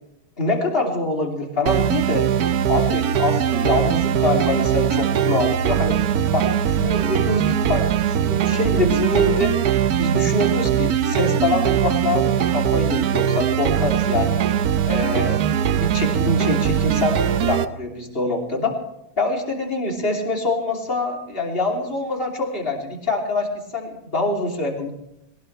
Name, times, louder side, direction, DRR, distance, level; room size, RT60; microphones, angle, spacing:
voice 1, 0.4-2.3 2.7-6.0 6.3-9.5 10.0-14.4 14.8-15.4 15.7-18.7 19.2-24.9, left 2 dB, 25° left, 0 dB, 3.2 m, -24 dB
sound 1, 1.7-17.7, right 9 dB, 60° right, 1.0 m, -21 dB
21.5 x 18.5 x 3.3 m, 0.83 s
omnidirectional pair, 2.2 m